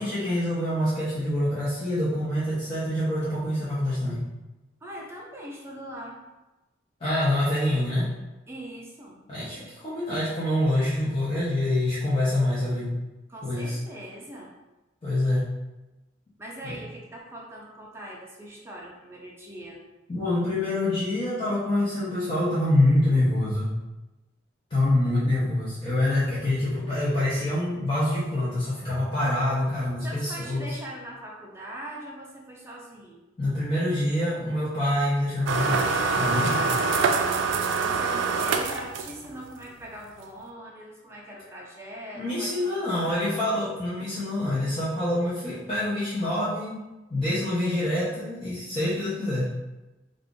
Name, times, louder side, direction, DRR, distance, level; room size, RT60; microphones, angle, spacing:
voice 1, 0.0-4.2 7.0-8.1 9.3-12.9 13.4-13.8 15.0-15.5 16.6-16.7 20.1-23.7 24.7-30.7 33.4-36.7 42.1-49.5, left 1 dB, 30° left, -11 dB, 0.7 m, -26 dB
voice 2, 4.8-6.2 8.5-9.2 13.3-14.5 16.4-19.8 30.0-33.2 37.8-43.4, right 1 dB, 15° right, -3 dB, 0.5 m, -41 dB
sound 1, 35.5-39.5, right 4 dB, 90° right, 0.3 m, -25 dB
2.5 x 2.4 x 3.6 m, 1.1 s
head